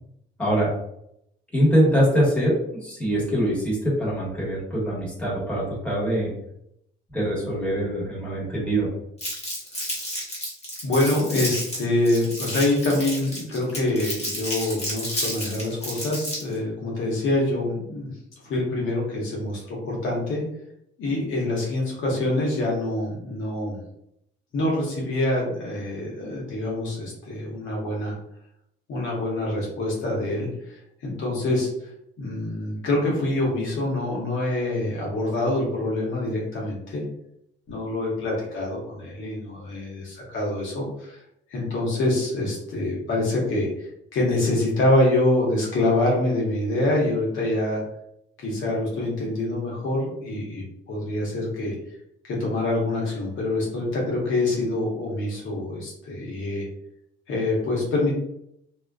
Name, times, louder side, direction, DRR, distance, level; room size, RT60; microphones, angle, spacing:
voice 1, 0.4-0.7 1.5-6.3 7.1-8.9, equal, 5° left, -7 dB, 1.3 m, -23 dB
Crumpling crinkling, 9.2-16.6, equal, 30° left, 1.3 m, -31 dB
voice 2, 10.8-18.2 18.4-20.4 21.0-23.8 24.5-28.1 28.9-31.7 32.2-37.0 37.7-41.2 41.5-47.8 48.4-51.7 52.2-56.7 57.3-58.2, left 2 dB, 75° left, -3 dB, 0.9 m, -25 dB
2.4 x 2.2 x 2.3 m, 0.76 s
cardioid pair, 90°, 20 cm